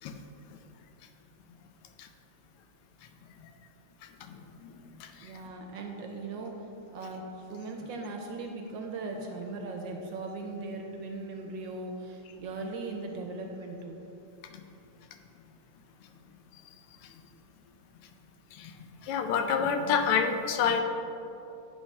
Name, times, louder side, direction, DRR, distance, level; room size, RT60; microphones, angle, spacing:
voice 1, 4.2-5.4 16.5-16.6 17.0-17.1 18.5-18.7 19.0-20.8, left 6 dB, 85° left, 6 dB, 1.5 m, -29 dB
voice 2, 5.2-6.7 6.9-14.0, right 3 dB, 70° right, 3 dB, 1.2 m, -39 dB
9.6 x 3.4 x 5.3 m, 3.0 s
omnidirectional pair, 2.4 m